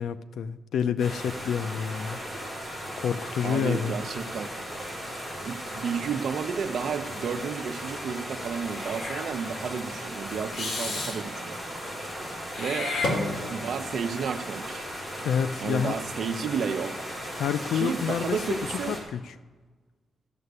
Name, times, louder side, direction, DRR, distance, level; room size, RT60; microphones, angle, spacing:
voice 1, 0.0-2.2 3.0-4.0 15.2-16.0 17.3-18.6 18.9-19.4, left 7 dB, 85° left, 10 dB, 0.5 m, -28 dB
sound 1, 1.0-19.0, equal, 20° left, 3.9 m, -37 dB
voice 2, 3.4-4.5 5.4-11.6 12.6-12.9 13.5-14.9 15.6-17.0 17.7-19.0, right 6 dB, 65° right, 8 dB, 0.9 m, -32 dB
Meow / Hiss, 8.7-9.3 10.5-11.2 12.5-13.7, left 2 dB, 50° left, 2.5 m, -31 dB
14.0 x 6.5 x 9.5 m, 1.3 s
wide cardioid pair, 150°, 0 cm